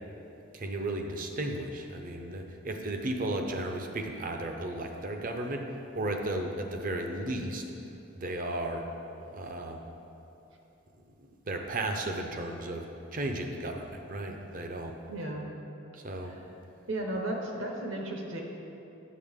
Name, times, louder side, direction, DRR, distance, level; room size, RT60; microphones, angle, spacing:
voice 1, 0.5-5.7 6.0-7.6 8.1-8.9 9.3-9.8 11.5-14.9 16.0-16.4, right 1 dB, 40° right, 4 dB, 0.6 m, -34 dB
voice 2, 15.1-15.5 16.2-16.4 16.9-18.4, right 1 dB, 60° right, 1 dB, 1.1 m, -34 dB
8.4 x 7.8 x 3.6 m, 3.0 s
head